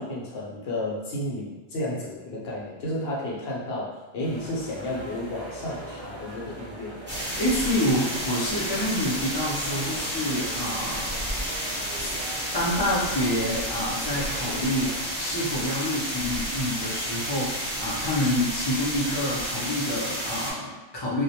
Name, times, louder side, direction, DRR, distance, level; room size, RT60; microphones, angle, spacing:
voice 1, 0.0-7.0, left 1 dB, 60° left, -5 dB, 0.8 m, -32 dB
sound 1, 4.2-15.0, right 1 dB, 45° right, 0.5 m, -41 dB
sound 2, 7.1-20.5, equal, 10° right, 0.7 m, -31 dB
voice 2, 7.4-11.1 12.5-21.2, left 1 dB, 40° left, -6 dB, 0.3 m, -27 dB
2.2 x 2.1 x 2.7 m, 1.2 s
omnidirectional pair, 1.3 m